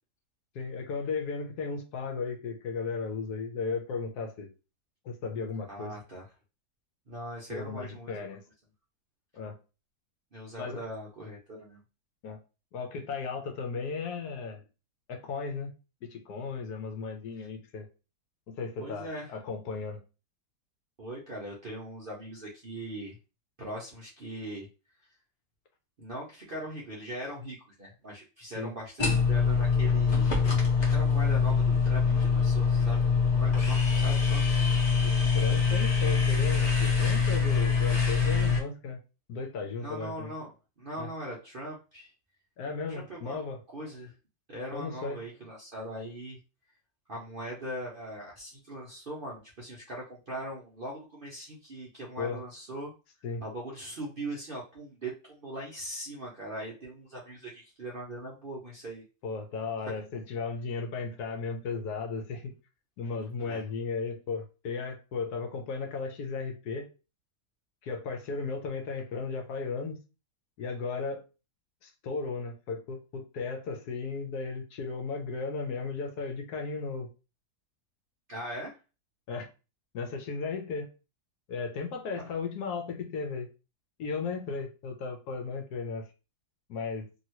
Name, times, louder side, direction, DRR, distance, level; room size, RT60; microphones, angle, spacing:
voice 1, 0.5-4.5 5.0-5.9 7.5-8.4 9.3-9.6 10.6-10.8 12.2-12.4 12.7-14.6 15.1-15.7 16.0-17.9 18.5-20.0 28.6-28.7 35.0-39.0 39.3-40.3 41.0-41.1 42.6-43.6 44.7-45.2 52.2-52.4 53.2-53.4 59.2-62.5 63.0-66.9 67.8-70.0 70.6-71.2 71.8-77.1 79.3-79.5 79.9-80.9 81.5-83.5 84.0-86.0 86.7-87.1, left 4 dB, 75° left, 1.2 m, -35 dB
voice 2, 5.7-6.2 7.1-8.1 10.3-11.8 17.4-17.5 18.8-19.3 21.0-23.2 23.6-24.7 26.0-30.4 30.8-34.5 39.8-42.1 42.9-43.4 43.7-44.1 44.5-46.4 47.1-52.9 53.4-59.0 63.4-63.6 78.3-78.7, right 1 dB, 55° right, 0.6 m, -40 dB
sound 1, 29.0-38.6, left 5 dB, 35° left, 0.9 m, -24 dB
2.9 x 2.7 x 2.8 m
omnidirectional pair, 1.8 m